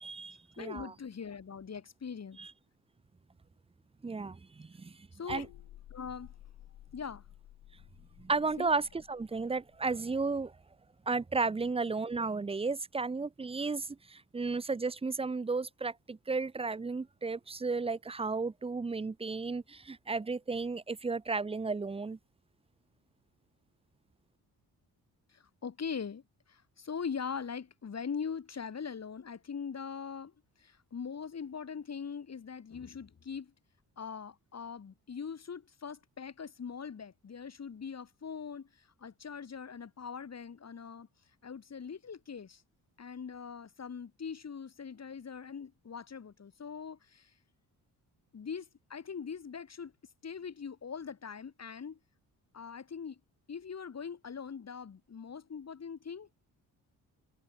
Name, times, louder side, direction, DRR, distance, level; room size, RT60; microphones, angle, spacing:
voice 1, 0.0-0.9 2.4-2.5 4.0-4.9 5.3-5.5 8.2-10.5 11.1-22.2, right 4 dB, 15° right, 0.5 m, -34 dB
voice 2, 0.6-2.4 5.1-5.5 5.9-6.4 6.9-7.2 8.6-8.7 25.3-30.3 30.6-33.5 34.0-41.1 41.4-42.6 43.0-47.3 48.3-49.9 50.2-52.0 52.5-53.2 53.5-56.3, left 6 dB, 45° left, 2.2 m, -42 dB
sound 1, 5.3-9.9, left 13 dB, 90° left, 5.6 m, -54 dB
cardioid pair, 75°, 38 cm